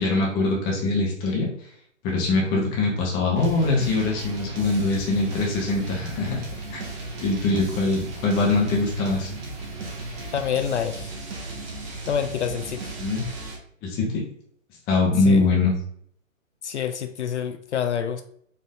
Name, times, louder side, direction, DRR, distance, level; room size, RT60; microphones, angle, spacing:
voice 1, 0.0-1.5 2.0-6.4 6.7-6.8 7.2-9.3 13.0-13.2 13.8-14.2 14.9-15.7, left 3 dB, 10° left, -2 dB, 0.6 m, -23 dB
sound 1, 3.3-13.6, right 2 dB, 20° right, 0.7 m, -35 dB
voice 2, 10.3-11.2 12.1-13.0 15.3-15.5 16.6-18.2, left 8 dB, 60° left, 9 dB, 0.5 m, -27 dB
4.3 x 2.5 x 3.6 m, 0.65 s
figure-of-eight pair, 130°, 40 cm